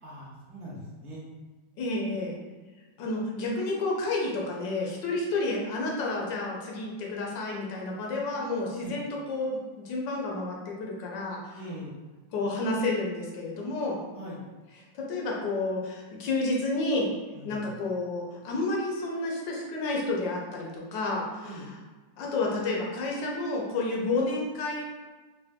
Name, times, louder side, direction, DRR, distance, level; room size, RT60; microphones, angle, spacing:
voice 1, 0.0-1.2 2.0-2.3 8.8-9.0 11.5-11.9 14.1-14.4 17.3-17.7 21.4-21.7, right 1 dB, 5° left, -8 dB, 0.5 m, -42 dB
voice 2, 1.8-2.4 3.0-11.6 12.3-14.0 14.7-14.8 15.1-17.1 17.4-21.8 22.2-24.8, left 2 dB, 80° left, -2 dB, 1.4 m, -30 dB
3.8 x 2.2 x 3.5 m, 1.3 s
omnidirectional pair, 1.9 m